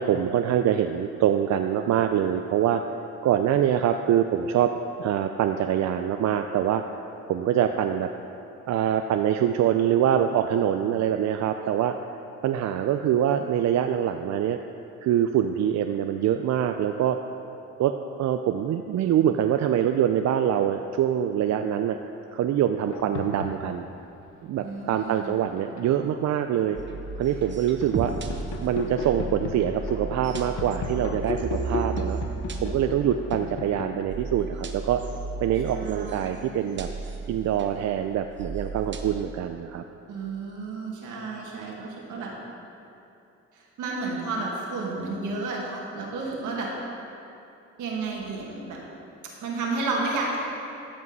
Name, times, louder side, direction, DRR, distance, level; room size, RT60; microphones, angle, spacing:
voice 1, 0.0-2.8 3.2-4.7 5.0-8.1 8.7-11.9 12.4-14.6 15.0-17.2 17.8-17.9 18.2-22.0 22.3-23.9 24.4-26.8 27.2-28.1 28.6-32.2 32.6-35.0 35.4-36.9 37.3-39.8, right 10 dB, 65° right, 6 dB, 0.5 m, -24 dB
sound 1, 22.8-24.0 24.9-26.1 26.6-34.0, left 5 dB, 70° left, 0.8 m, -36 dB
voice 2, 24.6-25.3 35.7-36.4 40.1-42.3 43.5-46.7 47.8-48.8 49.4-50.4, right 3 dB, 85° right, -2 dB, 2.0 m, -32 dB
sound 2, 26.8-39.2, right 4 dB, 40° right, 0.9 m, -35 dB
14.0 x 5.3 x 5.4 m, 2.7 s
cardioid pair, 90°, 30 cm